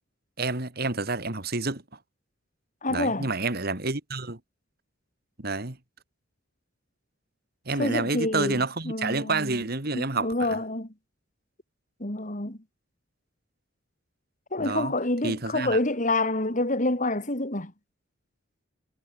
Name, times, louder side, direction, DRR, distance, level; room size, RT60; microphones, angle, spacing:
voice 1, 0.4-1.8 2.9-4.4 5.4-5.8 7.7-10.6 14.6-14.9 15.2-15.8, right 3 dB, 50° right, 2.6 m, -29 dB
voice 2, 2.8-3.3 7.8-9.6 9.9-10.9 12.0-12.6 14.5-17.7, left 2 dB, 40° left, 3.0 m, -27 dB
head